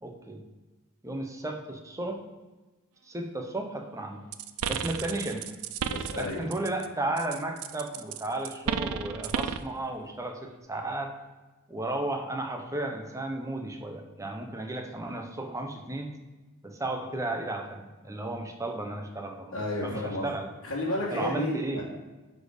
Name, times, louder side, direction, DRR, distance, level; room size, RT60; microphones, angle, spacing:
voice 1, 0.0-0.4 1.0-2.2 3.1-4.2 4.7-5.4 6.1-11.1 11.7-16.1 16.6-19.6 19.8-20.5 21.1-21.8, right 2 dB, 15° right, 3 dB, 0.8 m, -34 dB
sound 1, 4.3-6.9 7.2-9.7, right 7 dB, 80° right, 0.5 m, -33 dB
voice 2, 5.9-6.5 19.5-20.3 20.6-21.8, left 2 dB, 60° left, -7 dB, 1.5 m, -32 dB
10.0 x 4.3 x 5.0 m, 1.2 s
head